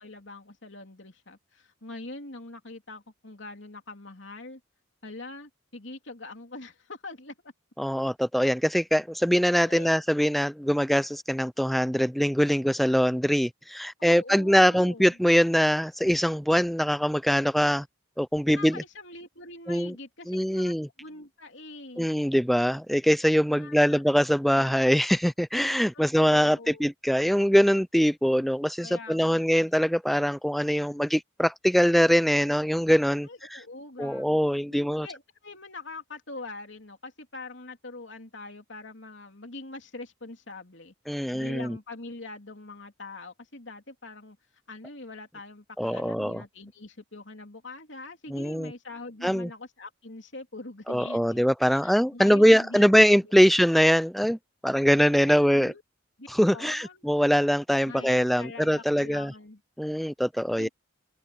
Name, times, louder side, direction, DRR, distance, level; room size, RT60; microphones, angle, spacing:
voice 1, 0.0-4.6 5.0-7.5 9.6-10.0 14.0-15.2 18.5-22.1 23.5-24.0 25.9-26.9 28.8-29.7 33.2-34.4 34.7-40.9 41.3-44.4 44.7-51.4 51.7-53.5 55.3-55.8 56.2-57.1 57.8-59.6 60.6-60.7, left 2 dB, 60° left, 3.4 m, -43 dB
voice 2, 7.8-17.9 18.2-18.8 19.7-19.9 20.3-20.9 22.0-33.6 34.0-35.1 41.1-41.8 45.8-46.4 48.3-48.7 49.2-49.5 50.9-54.4 54.6-55.7 56.3-59.3 59.8-60.7, equal, ahead, 0.4 m, -23 dB
head